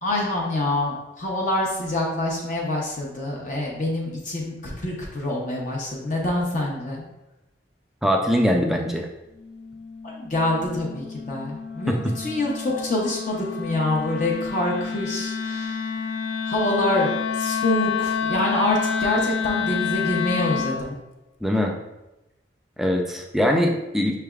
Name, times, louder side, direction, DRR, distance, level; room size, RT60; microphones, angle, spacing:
voice 1, 0.0-7.0 10.0-15.8 16.5-21.0, left 1 dB, 40° left, -2 dB, 0.7 m, -26 dB
voice 2, 8.0-9.1 11.9-12.1 21.4-21.8 22.8-24.2, equal, ahead, 1 dB, 0.4 m, -22 dB
Wind instrument woodwind instrument, 9.4-20.9, left 6 dB, 85° left, 0.4 m, -29 dB
5.8 x 3.3 x 2.3 m, 0.97 s
head